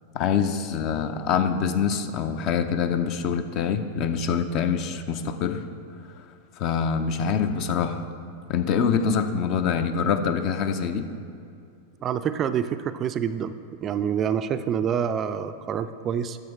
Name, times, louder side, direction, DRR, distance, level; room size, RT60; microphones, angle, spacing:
voice 1, 0.1-5.6 6.6-8.1 8.5-11.1, left 6 dB, 40° left, 9 dB, 0.6 m, -25 dB
voice 2, 12.0-13.5 13.8-16.4, right 8 dB, 30° right, 11 dB, 0.3 m, -27 dB
10.5 x 6.8 x 4.7 m, 2.5 s
figure-of-eight pair, 90°, 0 cm